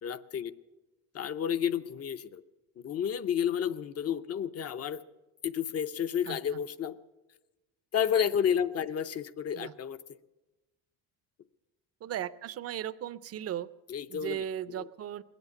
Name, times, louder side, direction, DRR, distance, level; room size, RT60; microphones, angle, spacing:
voice 1, 0.0-0.5 1.1-2.4 2.8-5.0 5.4-6.9 7.9-10.0 13.9-14.4 14.8-14.9, left 8 dB, 40° left, 13 dB, 0.6 m, -31 dB
voice 2, 12.0-13.7 14.1-15.2, right 10 dB, 40° right, 15 dB, 0.5 m, -36 dB
21.0 x 8.1 x 7.0 m, 1.1 s
cardioid pair, 110°, 40 cm